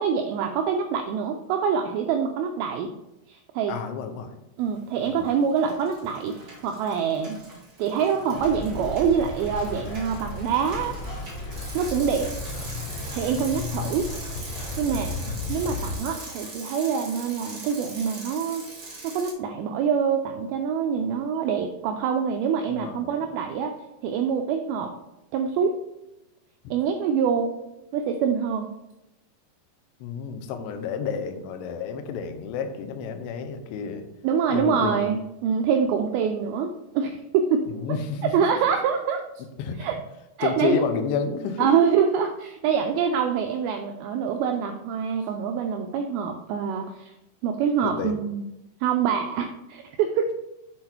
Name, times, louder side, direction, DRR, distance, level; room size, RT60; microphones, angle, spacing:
voice 1, 0.0-2.9 3.3-3.8 4.6-7.4 7.8-10.9 11.7-12.3 13.1-14.1 14.8-15.1 15.5-18.6 19.0-23.7 24.0-24.9 25.3-25.8 26.7-27.5 27.9-28.7 34.2-37.7 38.3-39.2 39.8-40.0 40.4-40.8 41.6-47.1 47.4-48.4 48.8-50.3, right 7 dB, 85° right, 4 dB, 2.1 m, -25 dB
voice 2, 3.7-4.4 5.1-5.3 22.7-23.1 30.0-34.1 34.5-35.1 37.7-38.3 39.6-39.8 40.4-41.7 47.8-48.2, left 6 dB, 85° left, 8 dB, 2.9 m, -30 dB
Bicycle, 4.9-5.3 5.6-19.3, right 2 dB, 60° right, 0.9 m, -41 dB
sound 1, 8.3-16.0, left 2 dB, 70° left, 2.7 m, -34 dB
8.1 x 4.0 x 4.4 m, 0.91 s
omnidirectional pair, 4.9 m